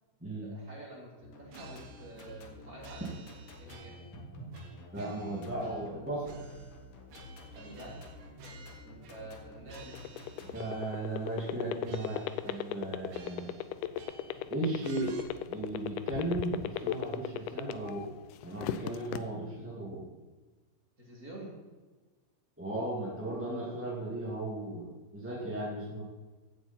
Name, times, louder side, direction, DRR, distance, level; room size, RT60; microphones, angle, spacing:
voice 1, 0.4-3.1 3.5-3.9 7.5-8.0 8.8-10.1 21.0-21.5, right 1 dB, 25° right, -3 dB, 3.1 m, -48 dB
sound 1, 1.2-10.6, left 2 dB, 50° left, 1.9 m, -51 dB
sound 2, 1.5-2.5 2.8-4.2 4.5-6.0 6.2-9.4 9.7-11.0 11.4-11.6 11.8-12.8 13.1-14.5 14.8-15.2, right 3 dB, 70° right, 2.6 m, -53 dB
voice 2, 4.9-6.4 10.5-13.5 14.5-15.2 15.5-18.1 18.4-20.1 22.6-26.0, right 1 dB, 5° right, -5 dB, 1.3 m, -36 dB
sound 3, 9.8-18.1 18.4-19.2, left 13 dB, 80° left, 1.8 m, -34 dB
15.5 x 8.0 x 4.4 m, 1.3 s
omnidirectional pair, 4.1 m